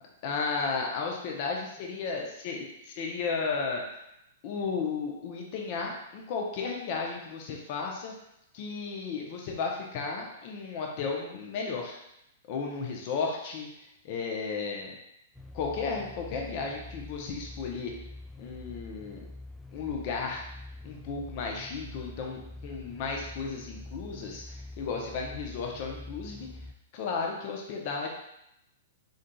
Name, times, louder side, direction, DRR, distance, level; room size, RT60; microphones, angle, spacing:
voice 1, 0.2-4.0 4.4-8.1 8.5-12.0 12.5-14.9 15.5-17.9 18.4-19.3 19.7-20.4 20.8-26.5 26.9-28.1, left 4 dB, 45° left, 0 dB, 0.7 m, -34 dB
sound 1, 15.3-26.7, left 2 dB, 5° left, 0.3 m, -45 dB
3.9 x 3.7 x 2.3 m, 0.81 s
hypercardioid pair, 110°, 0 cm